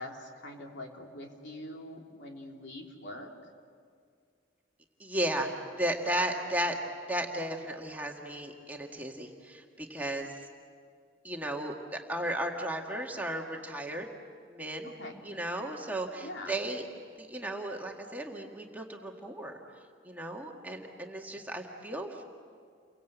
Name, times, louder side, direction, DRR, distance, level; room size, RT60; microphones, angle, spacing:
voice 1, 0.0-3.3 15.0-15.2 16.2-16.6, left 1 dB, 65° left, 1 dB, 3.1 m, -43 dB
voice 2, 5.0-6.8 7.1-10.4 11.2-14.1 14.5-14.9 15.2-16.9 17.2-19.6 20.0-22.2, right 1 dB, 10° right, 1 dB, 1.8 m, -35 dB
30.0 x 24.0 x 8.1 m, 2.1 s
head